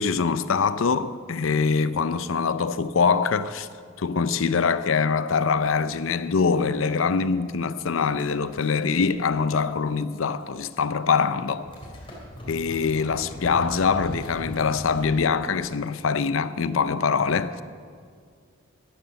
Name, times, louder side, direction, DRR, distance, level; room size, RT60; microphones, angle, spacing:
voice 1, 0.0-3.7 4.0-11.7 12.5-17.6, left 5 dB, 75° left, 0.5 m, -24 dB
sound 1, 8.2-10.8 11.1-15.2, equal, 25° left, 3.5 m, -41 dB
12.0 x 11.5 x 6.9 m
head